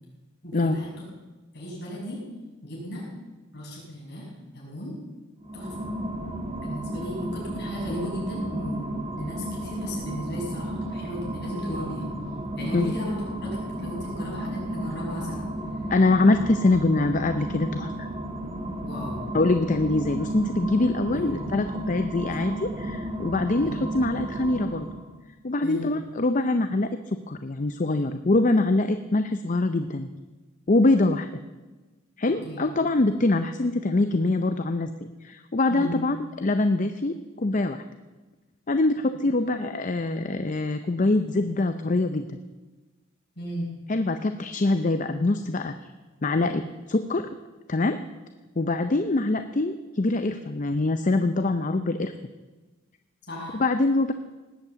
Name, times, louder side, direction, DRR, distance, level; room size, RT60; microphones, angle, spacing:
voice 1, 0.4-0.9 1.5-2.2 2.6-3.1 3.5-5.0 5.5-5.9 6.6-12.1 12.5-15.5 18.8-19.3 21.0-21.4 23.5-23.8 25.6-25.9 32.3-32.6 35.7-36.0 43.4-43.7 53.3-53.6, equal, 50° left, -4 dB, 6.6 m, -35 dB
sound 1, 5.4-25.2, right 1 dB, 30° right, 1.4 m, -33 dB
voice 2, 15.9-18.1 19.3-24.9 25.4-30.1 30.7-31.3 32.2-34.9 35.2-37.8 38.7-42.4 43.9-45.9 46.2-47.3 47.7-48.0 48.6-52.1 53.6-54.1, left 2 dB, 35° left, 9 dB, 0.5 m, -24 dB
18.5 x 8.4 x 8.1 m, 1.2 s
head